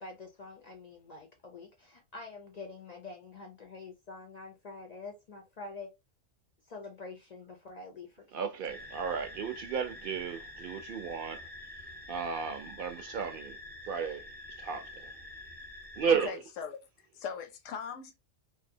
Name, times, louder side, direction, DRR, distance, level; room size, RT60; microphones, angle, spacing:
voice 1, 0.0-5.9 6.7-8.2, left 3 dB, 60° left, 0.4 m, -46 dB
voice 2, 8.3-11.5 12.1-13.6 13.9-14.3 14.6-15.1 16.0-16.4, right 6 dB, 60° right, 0.6 m, -33 dB
sound 1, 8.7-16.3, left 2 dB, 10° right, 0.5 m, -47 dB
voice 3, 16.2-18.2, left 6 dB, 85° left, 1.0 m, -40 dB
2.6 x 2.1 x 2.6 m
omnidirectional pair, 1.3 m